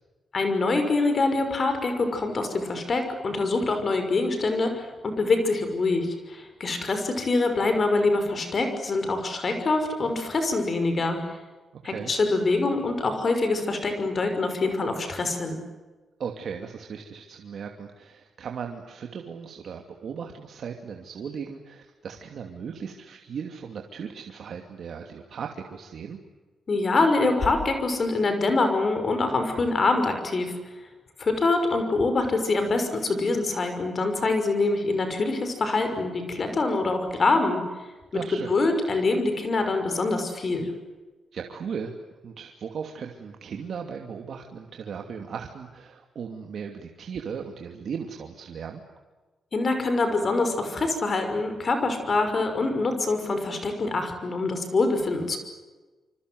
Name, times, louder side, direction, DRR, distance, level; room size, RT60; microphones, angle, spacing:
voice 1, 0.3-11.2 11.8-15.6 26.7-30.6 31.2-37.6 38.5-40.7 49.5-55.4, left 3 dB, 35° left, 7 dB, 5.9 m, -25 dB
voice 2, 16.2-26.2 38.1-38.5 41.3-41.9 42.2-48.8, right 6 dB, 55° right, 3 dB, 2.7 m, -37 dB
27.5 x 26.0 x 8.0 m, 1.2 s
wide cardioid pair, 145°, 0 cm